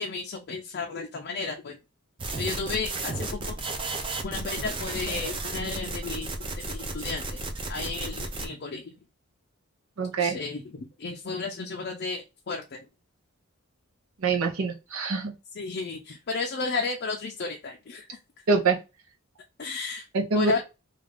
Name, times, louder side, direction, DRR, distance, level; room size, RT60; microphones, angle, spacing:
voice 1, 0.0-1.8 2.4-3.6 4.2-6.3 6.6-7.4 7.7-8.9 10.2-12.8 15.6-18.1 19.6-20.0 20.3-20.6, left 4 dB, 50° left, 2 dB, 0.4 m, -33 dB
sound 1, 2.2-8.5, right 2 dB, 25° right, 0.4 m, -33 dB
voice 2, 10.0-10.4 14.2-15.3 18.5-18.8 20.1-20.6, right 4 dB, 85° right, 3 dB, 0.7 m, -25 dB
2.5 x 2.3 x 3.3 m, 0.27 s
head